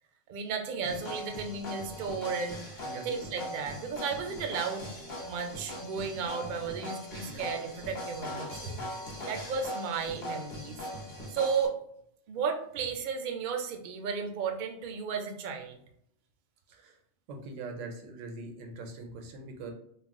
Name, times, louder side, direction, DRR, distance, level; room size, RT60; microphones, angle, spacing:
voice 1, 0.3-2.6 3.0-4.9 5.2-8.5 9.3-10.8 11.3-11.8 12.3-15.8, right 5 dB, 65° right, 4 dB, 0.5 m, -34 dB
sound 1, 0.8-11.7, equal, 45° left, 0.9 m, -40 dB
voice 2, 16.7-17.0 17.3-19.7, right 3 dB, 85° right, 4 dB, 1.0 m, -42 dB
2.3 x 2.1 x 3.5 m, 0.71 s
omnidirectional pair, 1.3 m